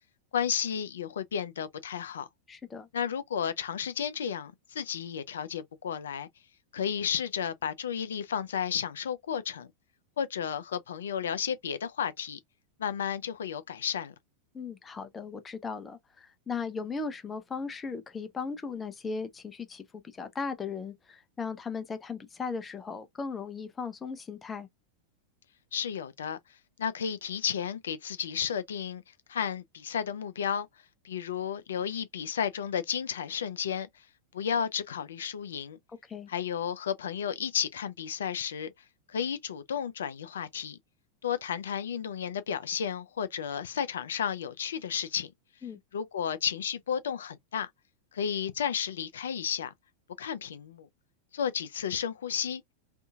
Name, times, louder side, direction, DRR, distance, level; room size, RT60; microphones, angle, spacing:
voice 1, 0.3-2.3 2.9-6.3 6.7-9.7 10.2-12.4 12.8-14.1 25.7-26.4 26.8-29.0 29.3-30.7 31.0-33.9 34.3-35.8 36.3-38.7 39.1-40.8 41.2-45.3 45.9-47.7 48.1-49.7 50.2-50.9 51.3-52.6, left 8 dB, 65° left, 0.4 m, -32 dB
voice 2, 2.5-2.9 14.5-24.7 36.1-36.3 45.6-45.8, left 5 dB, 15° left, 0.5 m, -37 dB
2.6 x 2.5 x 2.3 m
figure-of-eight pair, 90°, 0 cm